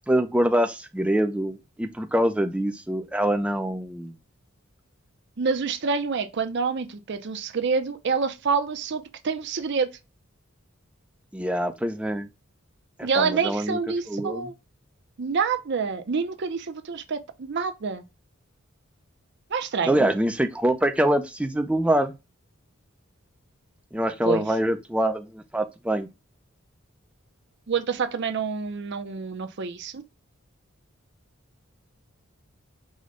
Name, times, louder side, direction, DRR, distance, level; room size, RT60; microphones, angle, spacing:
voice 1, 0.1-4.1 11.3-12.3 13.0-13.8 14.1-14.5 19.8-22.1 23.9-26.1, right 1 dB, 5° right, 0.4 m, -24 dB
voice 2, 5.4-9.9 13.0-14.5 15.2-18.0 19.5-20.1 24.3-24.4 27.7-30.0, right 5 dB, 55° right, 0.5 m, -27 dB
4.9 x 2.2 x 3.7 m
head